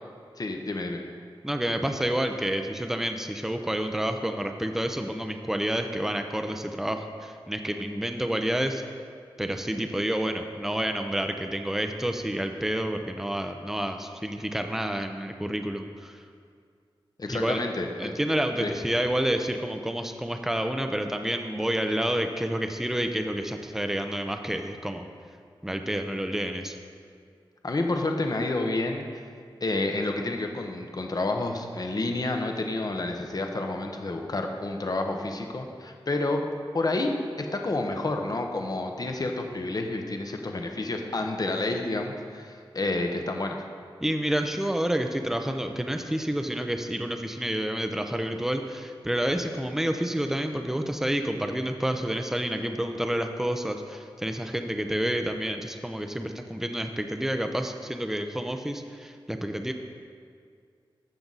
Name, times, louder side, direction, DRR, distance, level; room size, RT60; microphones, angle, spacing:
voice 1, 0.4-1.0 17.2-18.1 18.6-18.7 27.6-29.2 29.6-36.4 36.7-43.6, left 2 dB, 45° left, 3 dB, 1.0 m, -29 dB
voice 2, 1.4-8.8 9.4-16.2 17.3-17.6 18.0-25.1 25.6-26.8 44.0-59.7, right 1 dB, 5° right, 5 dB, 0.7 m, -29 dB
15.0 x 5.9 x 4.0 m, 2.2 s
wide cardioid pair, 60°, 9 cm